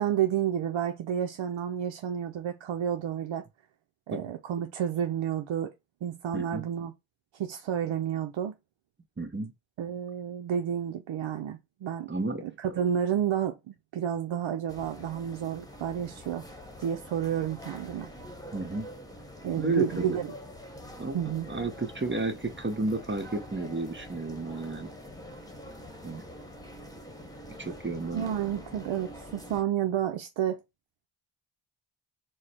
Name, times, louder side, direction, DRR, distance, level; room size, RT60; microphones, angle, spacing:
voice 1, 0.0-3.4 4.1-5.7 6.0-6.9 7.3-8.5 9.8-12.1 12.4-16.4 16.8-18.1 19.4-20.3 21.1-21.5 28.1-30.6, right 9 dB, 70° right, 0.7 m, -30 dB
voice 2, 6.3-6.7 9.2-9.5 12.1-12.4 18.5-18.9 19.6-20.2 21.0-21.2 21.5-24.9 26.0-26.2 27.6-28.3, right 3 dB, 25° right, 0.9 m, -32 dB
sound 1, 14.7-29.6, equal, 10° left, 1.2 m, -45 dB
4.7 x 2.2 x 4.3 m
cardioid pair, 75°, 48 cm